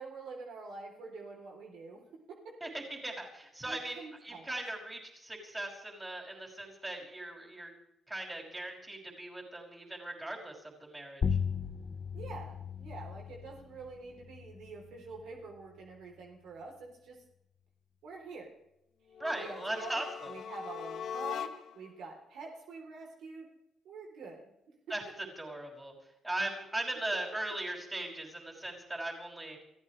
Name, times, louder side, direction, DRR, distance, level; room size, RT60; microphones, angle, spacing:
voice 1, 0.0-2.0 2.3-2.5 3.7-4.5 12.1-17.2 18.0-18.5 19.3-23.5 23.9-24.5, right 4 dB, 80° right, 1 dB, 3.5 m, -46 dB
voice 2, 2.6-7.7 8.1-11.2 19.2-20.3 24.9-25.9 26.2-29.6, right 1 dB, 15° right, 0 dB, 5.7 m, -39 dB
sound 1, 11.2-16.3, left 6 dB, 45° left, 1.2 m, -38 dB
sound 2, 19.1-21.9, left 8 dB, 70° left, 1.2 m, -41 dB
28.5 x 15.0 x 3.3 m, 0.82 s
cardioid pair, 90°, 0 cm